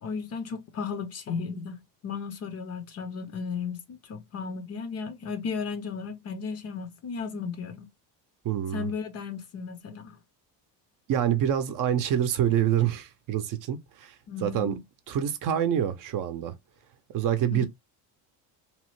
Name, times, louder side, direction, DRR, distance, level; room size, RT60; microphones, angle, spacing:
voice 1, 0.0-7.9 8.7-10.2 14.3-14.8 17.5-17.7, left 5 dB, 35° left, 0.6 m, -35 dB
voice 2, 8.4-8.9 11.1-14.2 14.4-14.8 15.1-16.5 17.1-17.7, right 10 dB, 50° right, 0.6 m, -26 dB
3.0 x 2.1 x 2.9 m
cardioid pair, 135°, 42 cm